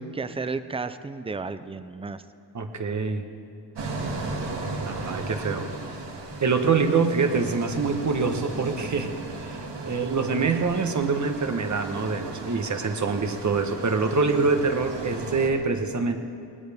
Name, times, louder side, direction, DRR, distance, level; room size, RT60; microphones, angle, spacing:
voice 1, 0.1-2.2, right 4 dB, 15° right, 12 dB, 0.4 m, -32 dB
voice 2, 2.5-3.3 4.8-5.7 6.4-9.1 9.4-16.2, right 4 dB, 40° right, 6 dB, 1.1 m, -25 dB
sound 1, 3.8-15.5, right 3 dB, 80° right, 2.5 m, -36 dB
20.0 x 20.0 x 3.5 m, 2.5 s
wide cardioid pair, 165°, 43 cm